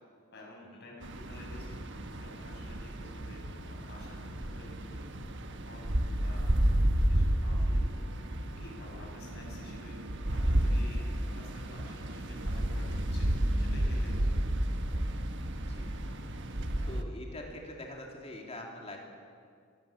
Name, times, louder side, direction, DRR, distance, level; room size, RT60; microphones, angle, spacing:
voice 1, 0.3-1.8 2.2-5.0 5.7-8.0 8.6-10.0 10.2-13.3 13.6-14.3, left 1 dB, 50° left, -2 dB, 6.9 m, -51 dB
sound 1, 1.0-17.0, right 1 dB, 60° right, 1.4 m, -31 dB
voice 2, 15.5-16.1 16.4-16.5 16.8-19.0, left 1 dB, 30° left, 0 dB, 3.5 m, -45 dB
24.5 x 17.5 x 7.5 m, 2.1 s
head